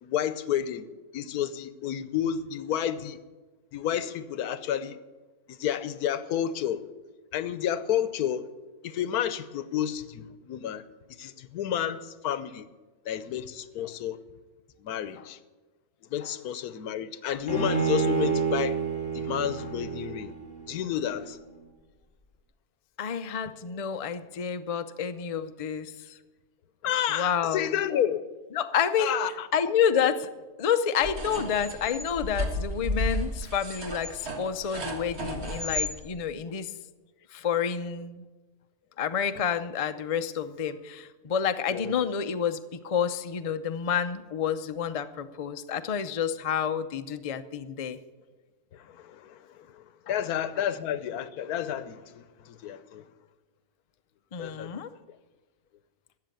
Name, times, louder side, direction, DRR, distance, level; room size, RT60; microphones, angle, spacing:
voice 1, 0.0-0.9 1.1-3.2 3.7-5.0 5.5-6.9 7.3-8.5 8.8-10.8 11.2-12.7 13.0-14.2 14.8-15.4 16.1-18.8 19.1-20.3 20.7-21.4 26.8-28.2 29.0-29.5 41.7-42.0 48.7-53.0 54.4-54.8, left 10 dB, 85° left, 1.2 m, -31 dB
Bowed string instrument, 17.5-20.8, right 5 dB, 40° left, 2.5 m, -28 dB
voice 2, 23.0-26.2 27.1-27.7 28.5-29.1 29.5-30.3 30.6-36.7 37.3-38.2 39.0-48.0 54.3-54.9, left 7 dB, 60° left, 0.3 m, -29 dB
sound 1, 31.0-35.9, left 1 dB, 45° right, 1.8 m, -33 dB
13.5 x 7.4 x 9.1 m
omnidirectional pair, 1.6 m